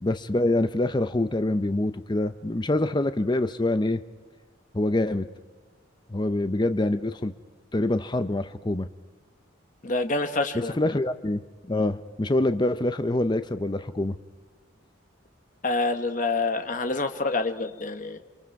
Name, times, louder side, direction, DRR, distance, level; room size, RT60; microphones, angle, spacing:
voice 1, 0.0-4.0 4.7-5.3 6.1-7.3 7.7-8.9 10.8-14.2, left 1 dB, 20° left, 10 dB, 0.6 m, -25 dB
voice 2, 9.8-10.7 15.6-18.2, left 3 dB, 40° left, 7 dB, 1.3 m, -27 dB
28.5 x 25.5 x 4.7 m, 1.4 s
head